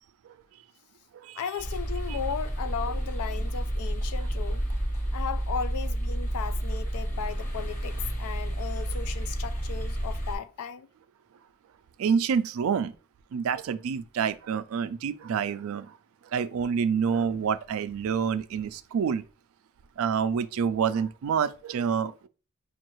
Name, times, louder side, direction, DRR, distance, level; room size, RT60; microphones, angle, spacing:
voice 1, 1.4-4.6 5.1-10.9, left 7 dB, 90° left, 0.4 m, -36 dB
sound 1, 1.6-10.4, right 1 dB, 35° left, 1.1 m, -30 dB
voice 2, 12.0-12.9 13.3-15.9 16.3-19.2 20.0-22.3, right 6 dB, 75° right, 0.3 m, -27 dB
5.2 x 2.3 x 3.0 m
head